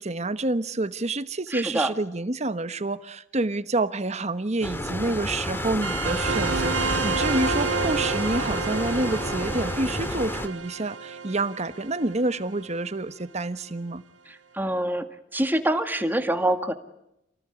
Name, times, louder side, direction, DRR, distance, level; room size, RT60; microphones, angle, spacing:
voice 1, 0.0-14.0, right 2 dB, 35° right, 13 dB, 1.2 m, -28 dB
voice 2, 1.5-1.9 14.3-16.7, right 1 dB, 10° right, 7 dB, 1.9 m, -26 dB
sound 1, 4.6-10.5, left 1 dB, 10° left, 2.0 m, -30 dB
sound 2, 5.8-12.9, right 4 dB, 90° right, 1.5 m, -30 dB
28.0 x 19.0 x 9.9 m, 0.82 s
head